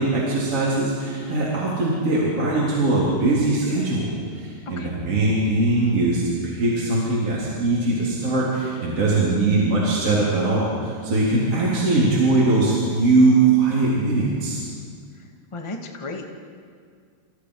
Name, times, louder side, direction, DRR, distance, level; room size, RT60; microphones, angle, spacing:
voice 1, 0.0-14.6, right 2 dB, 35° right, -6 dB, 4.5 m, -21 dB
voice 2, 15.5-16.3, left 2 dB, 15° left, 2 dB, 1.0 m, -34 dB
29.5 x 29.5 x 5.0 m, 2.1 s
omnidirectional pair, 4.6 m